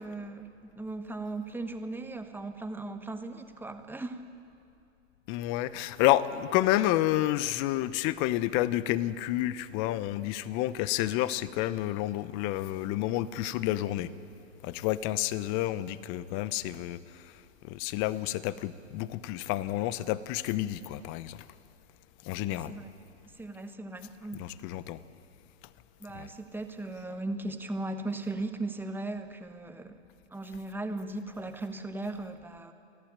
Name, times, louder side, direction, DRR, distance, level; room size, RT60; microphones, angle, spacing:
voice 1, 0.0-4.2 22.3-22.9 23.3-24.4 26.0-30.0 30.3-32.7, right 2 dB, 5° right, 1.2 m, -37 dB
voice 2, 5.3-14.1 14.6-21.5 22.2-22.8 24.4-25.0 26.1-26.3, left 14 dB, 35° left, 0.8 m, -30 dB
28.5 x 11.5 x 8.8 m
hypercardioid pair, 120°, 38 cm